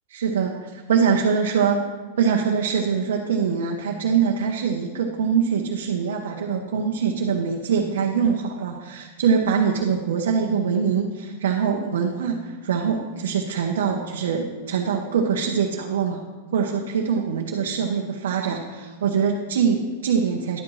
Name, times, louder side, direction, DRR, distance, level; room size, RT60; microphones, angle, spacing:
voice 1, 0.1-1.8 2.2-16.2 16.5-20.6, right 6 dB, 85° right, 0 dB, 0.9 m, -23 dB
11.0 x 8.8 x 3.2 m, 1.4 s
supercardioid pair, 170°, 0 cm